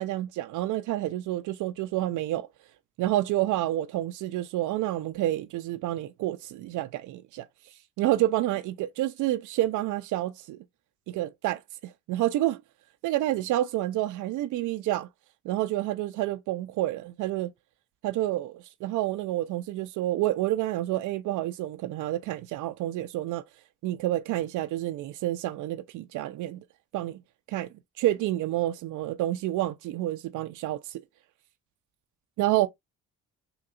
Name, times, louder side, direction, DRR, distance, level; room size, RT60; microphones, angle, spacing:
voice 1, 0.0-2.5 3.0-7.4 8.0-10.6 11.1-12.6 13.0-15.1 15.4-17.5 18.0-23.4 23.8-26.6 26.9-27.2 27.5-27.7 28.0-31.0 32.4-32.7, right 15 dB, 80° right, 0.5 m, -29 dB
3.7 x 2.9 x 2.4 m
cardioid pair, 90°, 30 cm